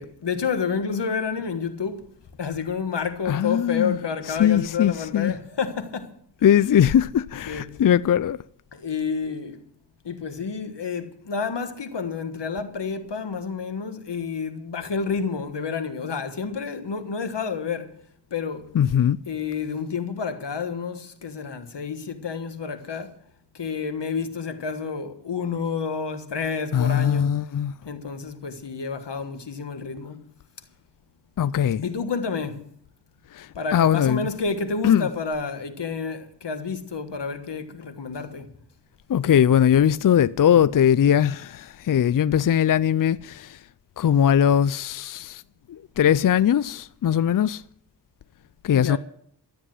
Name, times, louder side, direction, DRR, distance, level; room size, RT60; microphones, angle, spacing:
voice 1, 0.0-2.0 2.4-6.1 7.5-7.8 8.7-9.6 10.0-17.9 18.3-18.7 19.3-23.2 23.5-27.4 27.8-30.2 31.8-32.7 33.5-38.5 48.7-49.0, left 5 dB, 85° left, 1.5 m, -29 dB
voice 2, 3.3-4.0 4.4-5.3 6.4-8.4 18.7-19.2 26.7-27.7 31.4-31.9 33.3-34.3 34.8-35.1 39.1-43.6 44.0-45.4 45.7-47.6 48.6-49.0, left 9 dB, 55° left, 0.4 m, -20 dB
13.0 x 9.6 x 7.7 m
cardioid pair, 50°, 41 cm